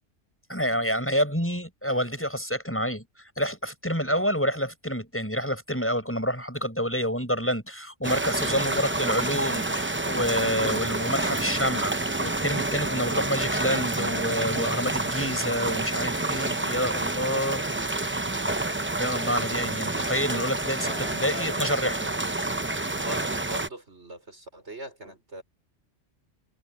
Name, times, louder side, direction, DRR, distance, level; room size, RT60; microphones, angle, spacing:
voice 1, 0.5-18.3 19.0-22.1, equal, 10° left, 7.3 m, -28 dB
sound 1, 8.0-23.7, right 2 dB, 15° right, 0.5 m, -28 dB
voice 2, 20.8-21.7 23.0-25.4, equal, 65° right, 5.4 m, -40 dB
omnidirectional pair, 1.2 m